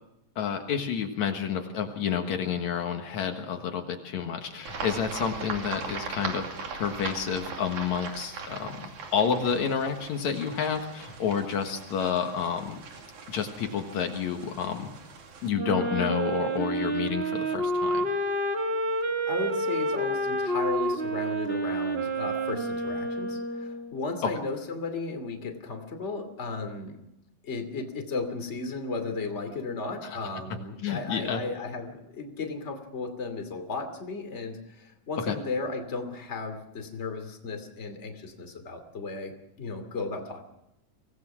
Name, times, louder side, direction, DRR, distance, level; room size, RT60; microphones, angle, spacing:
voice 1, 0.4-6.5 6.7-12.8 13.3-14.9 15.4-18.1 24.2-24.3 30.0-30.2 30.8-31.4 35.3-35.4, left 7 dB, 70° left, 5 dB, 2.7 m, -29 dB
sound 1, 4.7-15.5, right 4 dB, 80° right, 4.1 m, -40 dB
Wind instrument woodwind instrument, 15.5-23.9, right 1 dB, 25° right, 1.4 m, -29 dB
voice 2, 19.3-27.0 27.4-40.4, left 3 dB, 25° left, 5 dB, 2.6 m, -35 dB
25.0 x 18.0 x 6.1 m, 0.84 s
omnidirectional pair, 3.4 m